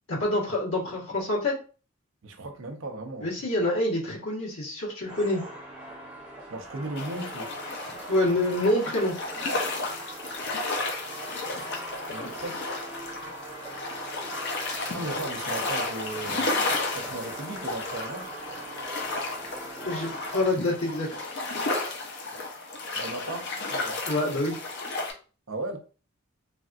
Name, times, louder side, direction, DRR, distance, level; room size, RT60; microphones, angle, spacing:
voice 1, 0.1-1.6 3.2-5.4 8.1-9.1 12.1-12.3 19.8-21.1 24.1-24.6, left 1 dB, 80° left, 1.5 m, -26 dB
voice 2, 2.2-3.3 6.5-7.5 12.1-12.6 14.9-16.5 17.0-18.3 23.0-24.0 25.5-25.8, right 2 dB, 70° right, 0.6 m, -36 dB
sound 1, 5.1-20.5, right 1 dB, 5° right, 0.8 m, -41 dB
sound 2, 7.0-25.1, left 3 dB, 55° left, 0.6 m, -33 dB
3.2 x 2.4 x 2.5 m
head